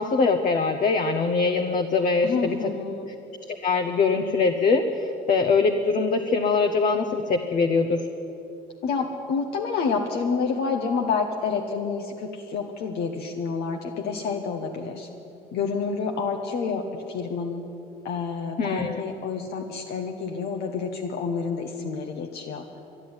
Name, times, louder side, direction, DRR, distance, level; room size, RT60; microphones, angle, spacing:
voice 1, 0.0-2.6 3.5-8.0 18.6-19.0, left 4 dB, 50° left, 5 dB, 0.9 m, -23 dB
voice 2, 2.2-3.1 8.8-15.1 15.5-17.7 18.0-22.6, left 5 dB, 75° left, 2 dB, 1.1 m, -28 dB
12.0 x 11.0 x 9.6 m, 2.8 s
cardioid pair, 110°, 17 cm